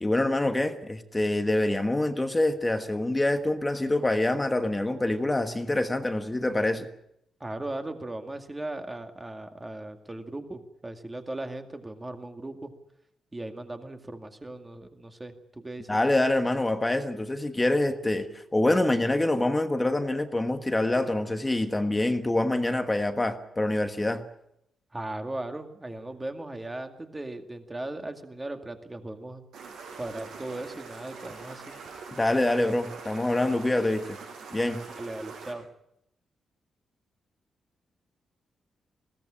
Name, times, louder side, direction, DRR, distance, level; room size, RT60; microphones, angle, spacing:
voice 1, 0.0-6.9 15.9-24.2 32.1-34.2 34.5-34.8, left 1 dB, 15° left, 8 dB, 1.4 m, -26 dB
voice 2, 7.4-12.7 13.3-15.9 24.9-29.4 30.0-31.8 34.9-35.6, right 2 dB, 15° right, 6 dB, 2.2 m, -38 dB
sound 1, 29.5-35.5, right 5 dB, 80° right, 6.7 m, -43 dB
21.5 x 17.0 x 10.0 m, 0.79 s
wide cardioid pair, 145°, 0 cm